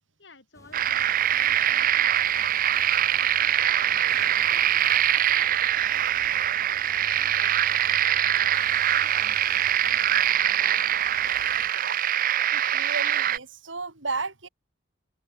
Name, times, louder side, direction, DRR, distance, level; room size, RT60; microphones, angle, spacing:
voice 1, 0.2-4.6 4.8-10.9, left 3 dB, 65° left, 6.4 m, -54 dB
sound 1, 0.5-11.7, left 1 dB, 15° left, 2.8 m, -50 dB
sound 2, 0.7-13.4, right 11 dB, 45° right, 0.6 m, -23 dB
voice 2, 12.5-14.5, right 4 dB, 80° right, 3.7 m, -33 dB
head